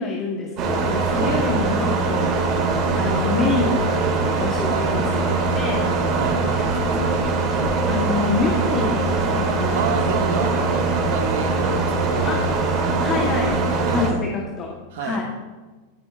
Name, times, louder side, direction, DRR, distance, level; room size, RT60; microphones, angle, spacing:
voice 1, 0.0-2.3 2.9-4.0 4.4-6.0 7.8-9.8 10.1-10.2 12.2-12.5 13.0-15.2, left 4 dB, 30° left, 0 dB, 1.0 m, -27 dB
sound 1, 0.6-14.1, right 3 dB, 35° right, 1.9 m, -22 dB
voice 2, 1.1-1.5 4.7-4.8 6.1-7.2 9.7-12.5 13.8-14.3 14.9-15.2, right 6 dB, 75° right, 3 dB, 1.1 m, -30 dB
13.0 x 5.3 x 2.3 m, 1.3 s
supercardioid pair, 145°, 0 cm